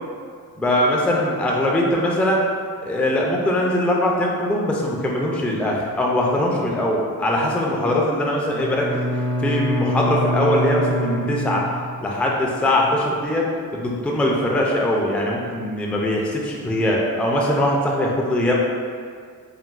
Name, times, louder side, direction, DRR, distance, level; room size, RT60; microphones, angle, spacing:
voice 1, 0.6-2.4 2.8-8.9 9.4-11.6 12.0-18.5, left 1 dB, 5° left, -2 dB, 0.3 m, -21 dB
Bowed string instrument, 8.5-12.1, equal, 85° right, 1.0 m, -25 dB
3.8 x 2.0 x 2.4 m, 2.1 s
cardioid pair, 70°, 36 cm